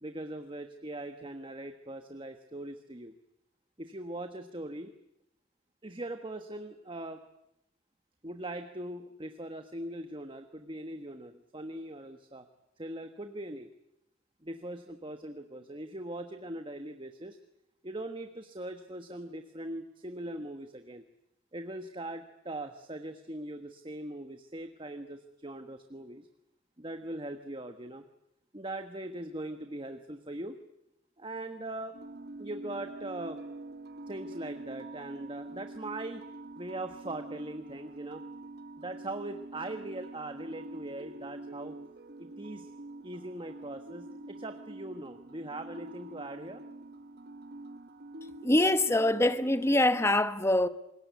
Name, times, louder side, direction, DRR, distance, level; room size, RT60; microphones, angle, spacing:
voice 1, 0.0-3.1 3.8-4.9 5.8-7.2 8.2-12.4 12.8-13.7 14.4-17.4 17.8-21.0 21.5-26.3 26.8-28.0 28.5-30.6 31.2-31.9 32.4-33.4 34.1-36.2 36.6-38.2 38.8-41.7 42.2-42.7 43.0-46.6, right 1 dB, 25° right, 1.4 m, -41 dB
sound 1, 31.9-50.1, right 2 dB, 50° right, 1.0 m, -45 dB
voice 2, 48.4-50.7, left 1 dB, 15° left, 1.0 m, -24 dB
26.0 x 21.5 x 9.3 m
head